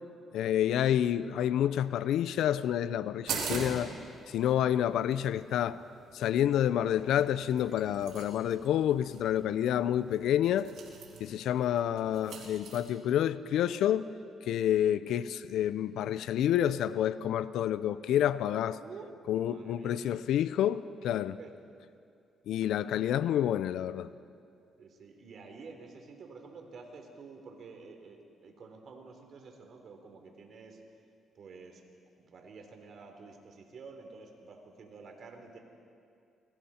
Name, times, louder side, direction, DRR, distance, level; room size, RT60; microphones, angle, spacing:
voice 1, 0.3-3.9 4.3-5.8 6.1-10.7 11.2-14.1 14.5-18.8 19.3-21.4 22.5-24.1, left 10 dB, 80° left, 0.6 m, -28 dB
sound 1, 3.3-12.8, right 5 dB, 85° right, 4.0 m, -43 dB
voice 2, 11.1-11.5 18.8-20.0 21.4-21.5 24.8-30.8 31.4-31.8 32.2-35.6, right 4 dB, 60° right, 3.6 m, -50 dB
28.0 x 22.5 x 4.4 m
cardioid pair, 90°, 0 cm